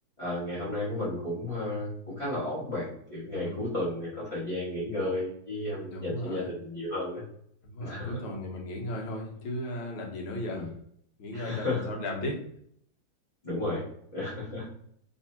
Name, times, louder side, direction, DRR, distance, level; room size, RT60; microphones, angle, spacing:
voice 1, 0.2-7.2 7.8-8.2 10.5-10.7 11.3-11.9 13.4-13.8 14.1-14.7, left 1 dB, 20° left, -9 dB, 1.0 m, -33 dB
voice 2, 3.3-3.6 5.9-6.5 7.6-10.7 11.2-12.4, left 1 dB, 85° left, 0 dB, 1.8 m, -36 dB
3.5 x 3.2 x 2.8 m, 0.66 s
omnidirectional pair, 2.3 m